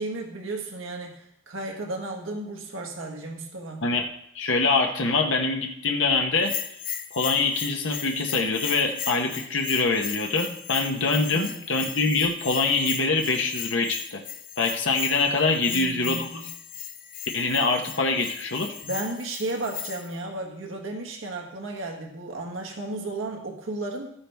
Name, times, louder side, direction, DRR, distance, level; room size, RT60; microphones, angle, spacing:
voice 1, 0.0-3.8 11.3-11.6 15.7-16.5 18.8-24.1, right 2 dB, 75° right, 1 dB, 1.6 m, -34 dB
voice 2, 4.3-6.5 7.1-14.2 14.6-16.4 17.3-18.7, left 3 dB, 65° left, 2 dB, 1.1 m, -24 dB
Bell, 6.4-20.2, left 9 dB, 45° left, 0.6 m, -37 dB
13.0 x 9.8 x 3.5 m, 0.72 s
head